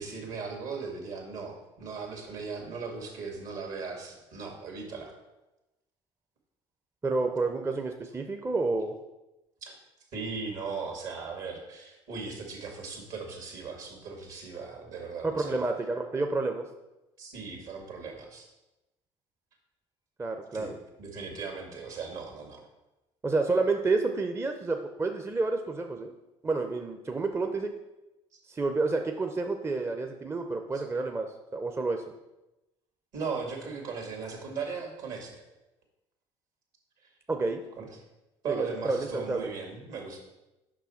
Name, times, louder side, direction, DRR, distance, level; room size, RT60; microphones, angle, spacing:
voice 1, 0.0-5.1 9.6-9.8 10.1-15.7 17.2-18.5 20.5-20.7 21.0-22.7 33.1-35.4 37.8-37.9 38.4-40.2, right 5 dB, 65° right, 2 dB, 2.0 m, -38 dB
voice 2, 7.0-8.9 15.2-16.7 20.2-20.7 23.2-26.1 26.4-27.7 28.5-31.3 31.5-32.0 37.3-37.6 38.5-39.5, right 3 dB, 15° right, 4 dB, 0.6 m, -29 dB
6.1 x 5.6 x 4.3 m, 0.98 s
hypercardioid pair, 60°, 15 cm